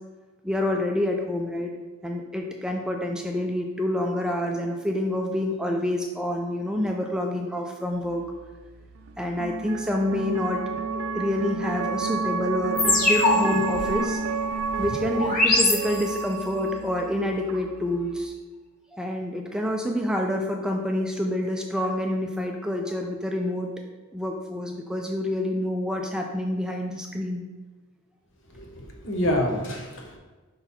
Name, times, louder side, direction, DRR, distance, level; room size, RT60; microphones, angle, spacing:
voice 1, 0.4-1.7 2.0-8.2 9.2-10.6 10.9-14.2 14.8-18.3 18.9-23.7 24.1-27.4, left 1 dB, 5° right, 2 dB, 0.3 m, -27 dB
sound 1, 7.9-18.3, right 4 dB, 85° right, 0.4 m, -31 dB
sound 2, 12.8-16.4, left 2 dB, 40° left, 1.0 m, -24 dB
voice 2, 28.5-30.2, left 1 dB, 65° left, 1 dB, 1.1 m, -27 dB
5.5 x 3.9 x 4.3 m, 1.3 s
head